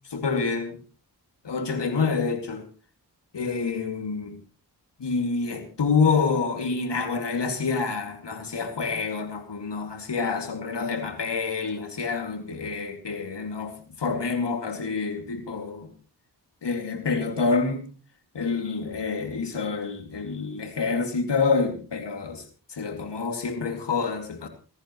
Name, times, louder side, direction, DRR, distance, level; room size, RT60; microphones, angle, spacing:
voice 1, 0.1-0.8 1.4-2.7 3.3-4.4 5.0-15.9 16.6-17.9 18.3-22.4 22.7-24.5, left 4 dB, 85° left, 2.6 m, -27 dB
30.0 x 11.0 x 3.1 m
cardioid pair, 45°, 41 cm